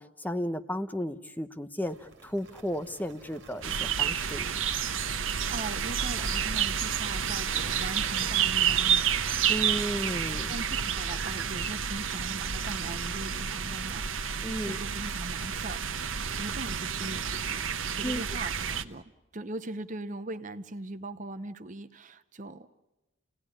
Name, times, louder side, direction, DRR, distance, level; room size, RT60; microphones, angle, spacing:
voice 1, 0.0-4.5 9.5-10.5 14.4-14.8 18.0-18.2, equal, 10° left, 8 dB, 0.9 m, -34 dB
sound 1, 1.8-13.7, right 4 dB, 55° right, 2.2 m, -50 dB
sound 2, 3.6-18.8, right 8 dB, 80° right, 1.0 m, -30 dB
voice 2, 5.1-9.1 10.5-15.9 16.3-17.7 17.9-19.0 19.3-22.7, right 2 dB, 40° right, 11 dB, 0.8 m, -40 dB
28.5 x 18.5 x 9.9 m, 1.1 s
head